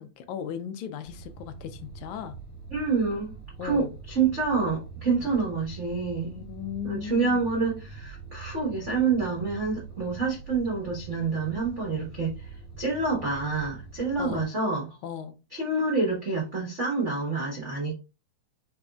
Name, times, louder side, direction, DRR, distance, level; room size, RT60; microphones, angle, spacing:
voice 1, 0.0-2.4 3.6-4.0 6.2-7.5 14.2-14.5 15.0-15.3, left 8 dB, 85° left, 2.1 m, -36 dB
sound 1, 1.0-14.4, right 5 dB, 60° left, 1.3 m, -43 dB
voice 2, 2.7-3.3 3.6-6.3 6.8-14.9 15.5-17.9, right 4 dB, 75° right, 0.6 m, -27 dB
5.1 x 3.8 x 2.3 m
omnidirectional pair, 3.4 m